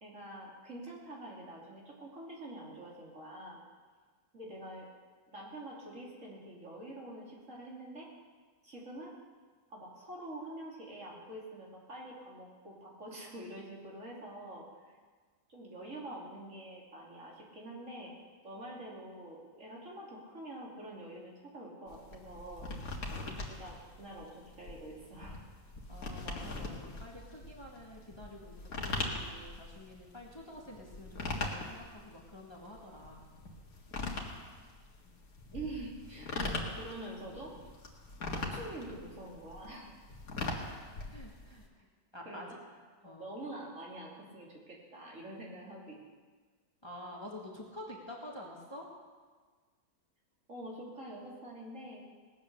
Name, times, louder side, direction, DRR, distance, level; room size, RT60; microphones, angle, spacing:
voice 1, 0.0-3.6 4.3-4.9 5.3-8.1 8.6-9.1 9.7-14.9 15.5-18.1 18.4-22.7 23.1-25.4 35.5-37.7 38.3-39.9 42.2-42.6 43.0-46.0 50.5-52.0, right 1 dB, 60° right, -3 dB, 3.2 m, -46 dB
sound 1, 21.9-41.7, left 2 dB, 85° left, 2.3 m, -41 dB
voice 2, 25.9-28.5 28.8-33.3 35.0-35.2 35.5-35.6 41.1-41.9 42.1-42.5 43.0-43.4 46.8-48.9, left 1 dB, 20° left, -2 dB, 1.9 m, -48 dB
19.0 x 8.8 x 6.6 m, 1.5 s
omnidirectional pair, 1.5 m